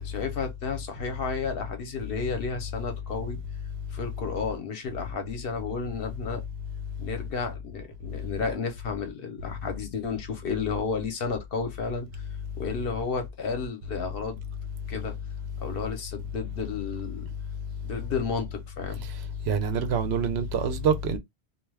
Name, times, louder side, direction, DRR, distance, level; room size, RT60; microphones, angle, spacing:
voice 1, 0.0-3.4 3.9-6.4 7.0-12.2 12.6-14.4 14.9-15.1 15.6-17.3 17.8-19.1, left 5 dB, 65° left, 1.0 m, -32 dB
voice 2, 19.0-21.2, right 5 dB, 80° right, 0.9 m, -26 dB
2.4 x 2.3 x 3.3 m
omnidirectional pair, 1.1 m